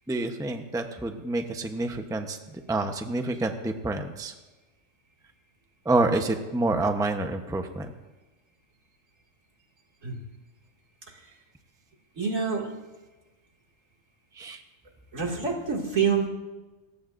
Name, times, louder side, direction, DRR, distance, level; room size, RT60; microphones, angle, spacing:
voice 1, 0.1-2.4 2.7-4.3 5.8-7.9 14.4-14.6, right 2 dB, 5° right, 5 dB, 0.8 m, -28 dB
voice 2, 12.2-12.7 15.1-16.3, right 6 dB, 80° right, 0 dB, 2.8 m, -26 dB
29.0 x 15.0 x 2.6 m, 1.2 s
omnidirectional pair, 1.3 m